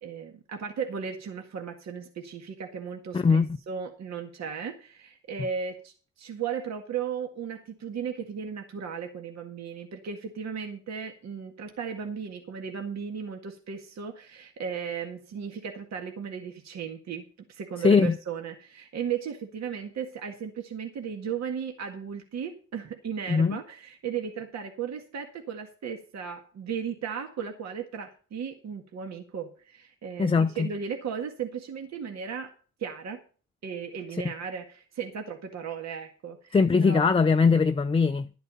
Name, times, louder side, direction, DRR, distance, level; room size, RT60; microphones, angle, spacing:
voice 1, 0.0-32.5 32.8-33.2 33.6-37.2, right 7 dB, 60° right, 1.9 m, -36 dB
voice 2, 3.1-3.5 17.8-18.2 23.3-23.6 30.2-30.7 36.5-38.3, left 5 dB, 20° left, 0.5 m, -21 dB
12.0 x 8.1 x 5.6 m
cardioid pair, 90°, 30 cm